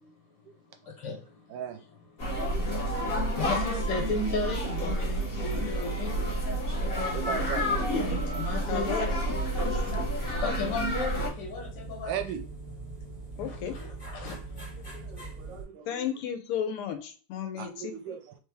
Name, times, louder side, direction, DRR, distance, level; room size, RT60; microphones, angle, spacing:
voice 1, 0.8-1.5 2.2-6.4 7.5-7.7 8.4-8.9 10.4-12.1 13.4-14.5, left 3 dB, 60° left, 1 dB, 1.5 m, -35 dB
voice 2, 1.5-1.8 7.1-7.9 9.6-10.0 12.1-12.4 14.9-16.1 17.6-18.4, right 9 dB, 75° right, 7 dB, 1.1 m, -38 dB
sound 1, 2.2-11.3, equal, 45° left, 0.7 m, -29 dB
voice 3, 7.9-9.1 9.5-9.7 13.4-13.8 14.5-14.6 14.9-15.3 15.9-18.2, left 8 dB, 85° left, 7 dB, 1.7 m, -35 dB
sound 2, 9.1-15.6, right 2 dB, 20° left, 1.2 m, -42 dB
3.8 x 3.2 x 3.4 m, 0.39 s
omnidirectional pair, 2.4 m